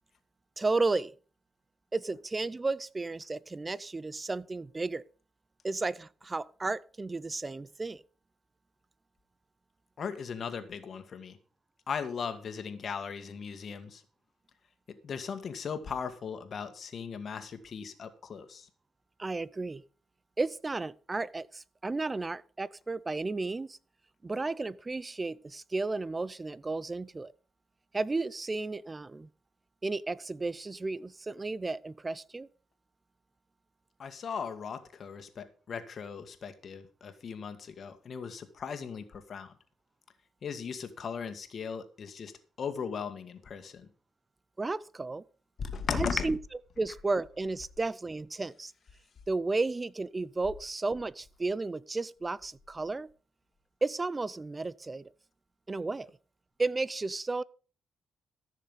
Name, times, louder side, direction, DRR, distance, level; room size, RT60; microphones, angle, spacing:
voice 1, 0.6-1.1 1.9-5.0 5.6-8.0 19.2-19.8 20.4-23.8 24.2-27.3 27.9-29.3 29.8-32.5 44.6-45.2 45.9-46.4 46.8-48.7 49.3-53.1 53.8-55.1 55.7-56.1 56.6-57.4, right 3 dB, 25° right, 0.5 m, -33 dB
voice 2, 10.0-11.4 11.9-14.0 14.9-18.7 34.0-39.5 40.4-42.3 42.6-43.9 45.6-46.3, left 6 dB, 50° left, 1.8 m, -37 dB
14.0 x 6.7 x 5.4 m
cardioid pair, 90°, 0 cm